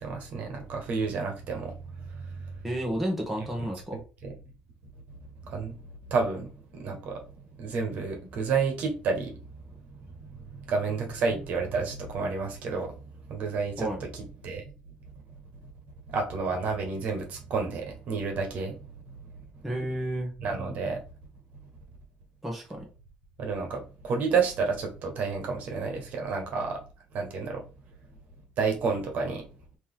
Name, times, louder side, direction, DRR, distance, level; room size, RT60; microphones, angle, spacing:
voice 1, 0.0-2.5 4.2-4.3 5.4-5.8 6.0-7.2 7.6-9.4 9.7-9.8 10.2-12.9 13.3-14.6 16.1-18.8 19.1-19.3 20.4-21.0 23.4-26.8 27.1-27.6 28.6-29.4, right 4 dB, 60° right, 3 dB, 1.3 m, -30 dB
voice 2, 2.6-4.0 13.8-14.0 19.6-20.3 22.4-22.8, right 1 dB, 5° right, -1 dB, 1.2 m, -31 dB
4.2 x 3.0 x 3.6 m, 0.34 s
cardioid pair, 145°, 3 cm